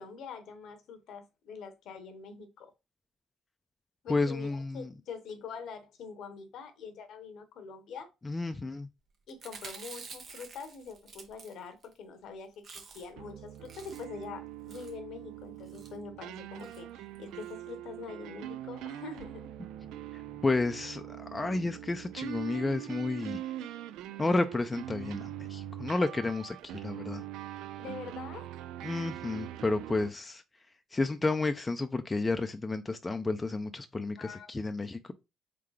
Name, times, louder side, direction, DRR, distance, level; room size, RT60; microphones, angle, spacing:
voice 1, 0.0-2.7 4.0-8.1 9.3-19.5 27.8-28.5 34.2-34.5, left 5 dB, 65° left, 0.9 m, -44 dB
voice 2, 4.1-4.9 8.2-8.9 20.4-23.5 24.2-27.2 28.8-30.4 30.9-35.1, left 3 dB, 20° left, 0.4 m, -31 dB
Chewing mastication, 9.3-11.9 12.2-12.3 12.5-13.2 13.5-14.2 14.7-15.0 15.6-15.9 16.6-16.8 17.1-17.2 17.4-17.5, right 5 dB, 55° right, 0.9 m, -48 dB
sound 1, 13.2-30.1, right 13 dB, 75° right, 0.3 m, -43 dB
3.7 x 3.2 x 3.3 m
hypercardioid pair, 60°, 0 cm